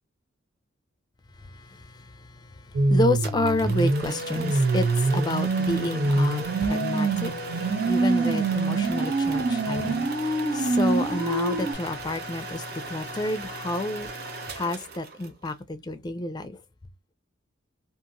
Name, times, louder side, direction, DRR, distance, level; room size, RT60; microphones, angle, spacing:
voice 1, 1.4-14.1 14.5-16.6, left 2 dB, 20° left, 0.4 m, -30 dB
sound 1, 2.7-11.7, right 3 dB, 90° right, 1.1 m, -25 dB
sound 2, 3.2-15.5, right 2 dB, 50° right, 0.6 m, -38 dB
2.8 x 2.5 x 2.5 m
head